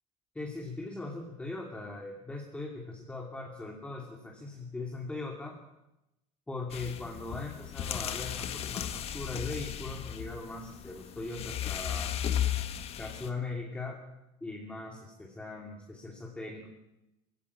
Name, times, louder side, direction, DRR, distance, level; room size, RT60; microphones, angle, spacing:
voice 1, 0.3-5.6 6.5-12.2 13.0-14.0 14.4-16.7, left 3 dB, 10° left, 0 dB, 2.8 m, -40 dB
sound 1, 6.7-13.3, left 10 dB, 45° left, 1.7 m, -35 dB
18.5 x 15.5 x 9.8 m, 0.93 s
cardioid pair, 140°, 14 cm